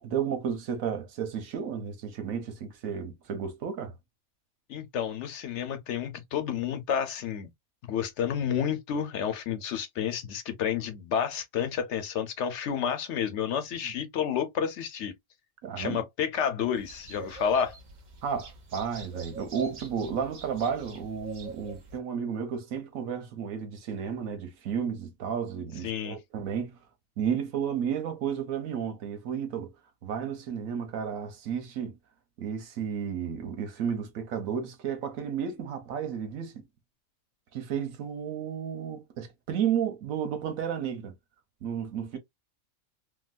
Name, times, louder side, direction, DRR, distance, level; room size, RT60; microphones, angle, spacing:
voice 1, 0.0-3.9 13.8-13.9 15.6-16.0 18.2-26.7 27.2-29.7 30.0-31.9 32.4-36.7 37.5-41.1 41.6-42.2, right 7 dB, 90° right, 1.2 m, -32 dB
voice 2, 4.7-7.5 7.9-15.1 15.8-17.8 25.8-26.2, left 8 dB, 65° left, 0.8 m, -30 dB
sound 1, 16.7-22.0, right 3 dB, 45° right, 0.7 m, -45 dB
3.8 x 2.2 x 2.4 m
omnidirectional pair, 1.4 m